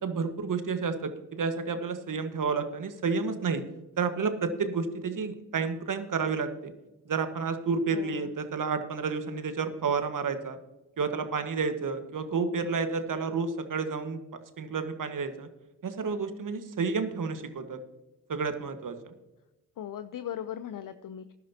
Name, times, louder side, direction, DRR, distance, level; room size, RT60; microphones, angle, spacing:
voice 1, 0.0-3.6 4.0-6.7 7.1-10.6 11.0-14.2 14.6-15.5 15.8-17.8 18.3-19.1, right 5 dB, 50° right, 9 dB, 1.5 m, -30 dB
voice 2, 7.9-8.3 19.8-21.3, left 10 dB, 50° left, 11 dB, 0.7 m, -38 dB
15.0 x 11.0 x 2.9 m, 1.1 s
supercardioid pair, 50°, 41 cm